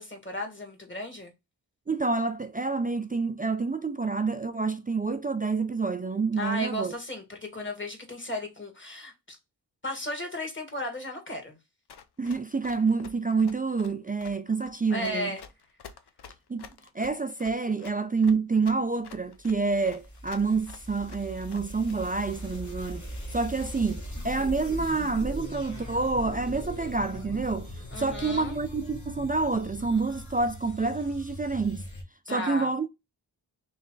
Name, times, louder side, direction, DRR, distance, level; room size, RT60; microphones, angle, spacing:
voice 1, 0.0-1.3 6.4-9.4 9.8-11.6 14.9-15.4 27.9-28.6 32.3-32.7, left 1 dB, 25° left, 1.6 m, -35 dB
voice 2, 1.9-6.9 12.2-15.4 16.5-16.7 16.9-31.9 32.3-32.9, right 4 dB, 20° right, 0.3 m, -28 dB
Run, 11.9-21.9, left 6 dB, 65° left, 0.6 m, -49 dB
sound 1, 19.2-32.0, left 1 dB, 40° left, 1.4 m, -40 dB
3.2 x 3.1 x 3.8 m
cardioid pair, 45°, 43 cm